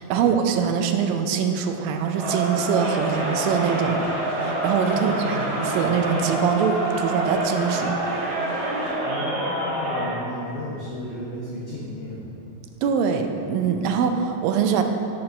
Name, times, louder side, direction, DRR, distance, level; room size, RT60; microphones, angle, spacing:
voice 1, 0.0-3.9 4.4-7.9 12.8-14.8, right 7 dB, 80° right, 5 dB, 2.2 m, -23 dB
Crowd, 2.1-10.2, right 2 dB, 55° right, 1.9 m, -27 dB
sound 1, 2.7-8.9, equal, 50° left, 1.6 m, -41 dB
voice 2, 4.9-5.5 9.0-12.3, left 1 dB, 85° left, -5 dB, 1.3 m, -34 dB
5.8 x 5.8 x 6.4 m, 2.9 s
omnidirectional pair, 4.1 m